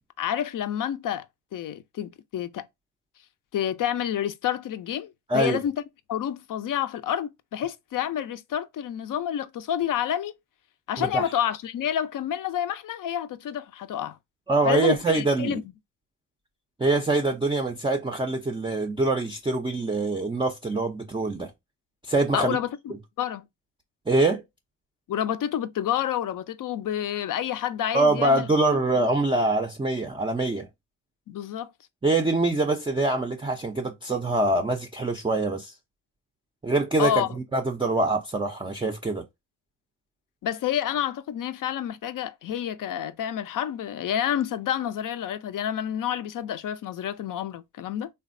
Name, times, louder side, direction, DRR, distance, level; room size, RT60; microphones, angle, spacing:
voice 1, 0.2-2.7 3.5-5.8 6.1-10.3 10.9-14.2 14.6-15.6 22.3-23.5 25.1-28.5 31.3-31.7 37.0-37.3 40.4-48.1, left 10 dB, 45° left, 0.5 m, -29 dB
voice 2, 14.5-15.6 16.8-21.5 22.0-22.6 24.1-24.4 27.9-30.7 32.0-35.7 36.6-37.2 37.5-39.2, right 2 dB, 10° right, 0.4 m, -24 dB
3.2 x 2.2 x 2.5 m
hypercardioid pair, 45°, 45 cm